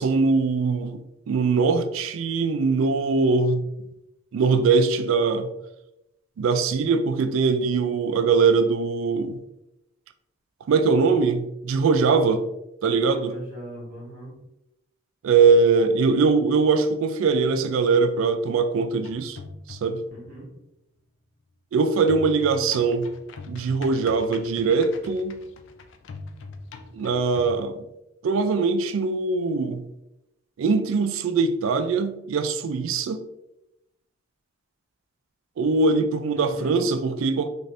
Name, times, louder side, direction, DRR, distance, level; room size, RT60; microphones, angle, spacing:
voice 1, 0.0-3.7 4.3-5.5 6.4-9.4 10.7-12.4 12.8-13.3 15.2-19.4 19.7-20.0 21.7-23.1 23.5-25.4 26.9-27.8 28.2-29.8 30.6-33.2 35.6-37.5, right 4 dB, 75° right, 0.3 m, -22 dB
voice 2, 13.0-14.3 20.1-20.5 36.3-36.8, right 1 dB, 40° right, 1.0 m, -39 dB
sound 1, 19.0-20.1 22.1-27.6, left 3 dB, 65° left, 0.3 m, -42 dB
2.6 x 2.5 x 3.3 m
head